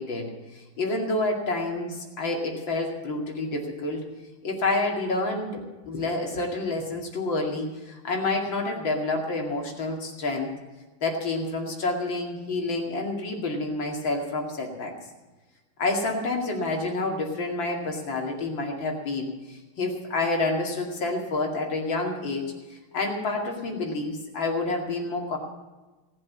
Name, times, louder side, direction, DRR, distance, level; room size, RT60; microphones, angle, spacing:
voice 1, 0.0-4.1 4.4-10.5 11.0-14.9 15.8-25.4, left 2 dB, 65° left, 1 dB, 3.0 m, -28 dB
18.0 x 7.7 x 8.3 m, 1.2 s
omnidirectional pair, 2.2 m